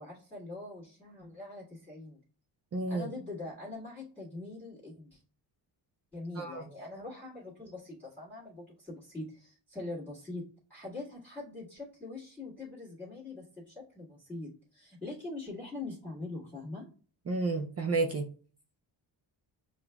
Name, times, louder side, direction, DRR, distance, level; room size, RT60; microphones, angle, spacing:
voice 1, 0.0-2.2 2.9-5.2 6.1-10.4 10.7-16.8, left 2 dB, 5° left, -8 dB, 1.6 m, -43 dB
voice 2, 2.7-3.1 6.4-6.6 17.3-18.3, right 3 dB, 35° right, 2 dB, 0.4 m, -31 dB
6.9 x 2.4 x 2.2 m, 0.40 s
cardioid pair, 115°, 47 cm